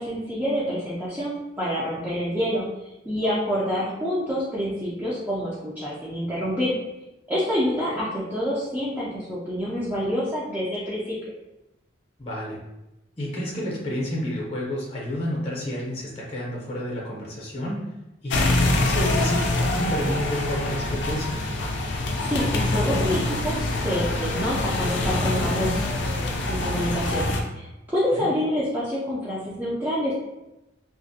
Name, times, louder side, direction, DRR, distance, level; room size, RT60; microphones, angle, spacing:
voice 1, 0.0-2.6 3.1-6.7 7.3-11.3 22.2-25.8 26.5-30.1, equal, 10° right, -9 dB, 0.4 m, -27 dB
voice 2, 12.2-12.6 13.2-17.9 18.2-21.4 28.1-28.3, equal, 30° left, -4 dB, 0.6 m, -30 dB
sound 1, 18.3-27.4, left 2 dB, 75° left, 0.4 m, -25 dB
2.4 x 2.1 x 2.6 m, 0.95 s
head